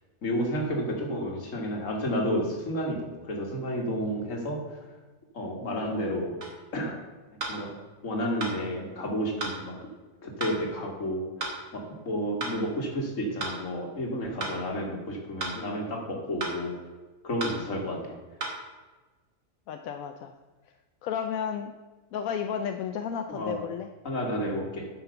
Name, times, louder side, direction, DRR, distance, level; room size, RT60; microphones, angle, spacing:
voice 1, 0.2-4.8 5.3-6.4 6.7-7.0 7.5-7.7 8.0-9.7 10.2-16.8 17.2-18.1 23.3-23.6 24.0-24.9, equal, 70° left, 0 dB, 2.4 m, -31 dB
sound 1, 6.4-6.6 7.4-7.6 8.4-8.6 9.4-9.6 10.4-10.6 11.4-11.6 12.4-12.6 13.4-13.6 14.4-14.6 15.4-15.6 16.4-16.6 17.4-17.6 18.4-18.6, right 3 dB, 75° right, 2.3 m, -33 dB
voice 2, 19.7-20.3 21.0-21.7 22.1-23.9, left 8 dB, 90° left, 7 dB, 1.1 m, -32 dB
9.5 x 5.9 x 6.7 m, 1.3 s
omnidirectional pair, 1.4 m